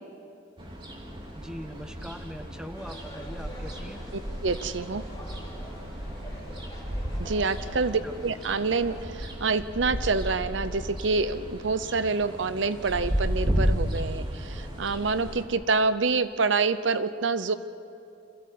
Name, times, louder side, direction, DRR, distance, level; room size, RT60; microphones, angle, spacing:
sound 1, 0.6-15.4, equal, 30° right, 2.8 m, -33 dB
voice 1, 1.3-4.0 8.0-8.1, equal, 5° right, 6 dB, 1.0 m, -41 dB
sound 2, 2.7-9.1, left 1 dB, 20° left, 4.2 m, -47 dB
voice 2, 4.1-5.0 7.2-17.5, right 4 dB, 70° right, 13 dB, 0.7 m, -27 dB
26.5 x 15.5 x 8.4 m, 2.7 s
head